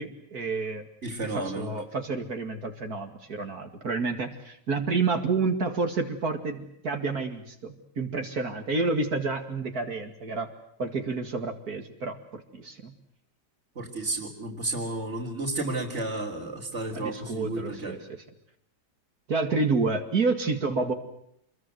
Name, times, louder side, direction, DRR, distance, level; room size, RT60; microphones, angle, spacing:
voice 1, 0.0-0.9 1.2-10.5 10.8-12.9 16.9-18.2 19.3-20.9, right 3 dB, 60° right, 5 dB, 2.7 m, -29 dB
voice 2, 1.0-1.7 13.8-18.0, right 2 dB, 40° right, -2 dB, 3.7 m, -32 dB
27.5 x 22.0 x 7.9 m, 0.73 s
omnidirectional pair, 1.8 m